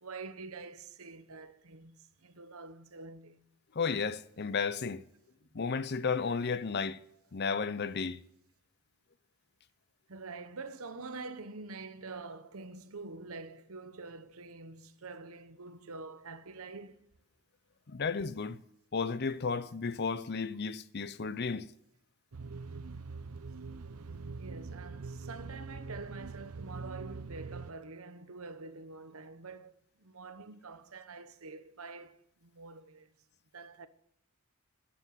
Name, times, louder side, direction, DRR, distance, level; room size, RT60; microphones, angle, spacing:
voice 1, 0.0-3.5 10.1-16.9 24.4-29.7 30.0-32.1 32.4-33.1 33.5-33.9, right 3 dB, 70° right, 1.1 m, -46 dB
voice 2, 3.7-5.0 5.5-7.0 7.3-8.2 17.9-18.6 18.9-21.7, left 5 dB, 50° left, 0.6 m, -33 dB
sound 1, 22.3-27.7, right 4 dB, 90° right, 0.7 m, -43 dB
12.0 x 9.9 x 9.4 m
head